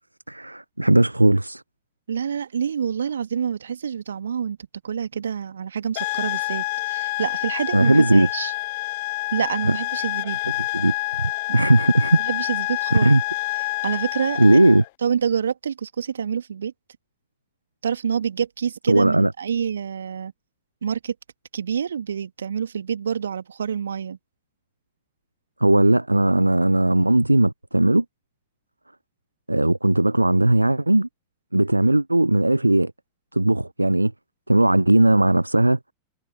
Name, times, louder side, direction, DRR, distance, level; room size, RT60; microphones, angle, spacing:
voice 1, 0.3-1.6 7.7-8.3 9.7-9.8 10.7-12.2 12.9-13.2 14.4-14.8 18.9-19.3 25.6-28.0 29.5-31.1 31.5-32.9 33.3-34.1 34.5-35.8, right 1 dB, 85° right, 0.8 m, -18 dB
voice 2, 2.1-4.6 4.8-8.5 9.3-10.4 11.5-11.6 12.1-13.2 13.8-14.6 15.0-16.7 17.8-20.3 20.8-21.1 21.5-24.2, right 7 dB, 70° right, 2.5 m, -27 dB
sound 1, 6.0-14.9, left 22 dB, 50° left, 0.4 m, -28 dB
figure-of-eight pair, 90°, 0 cm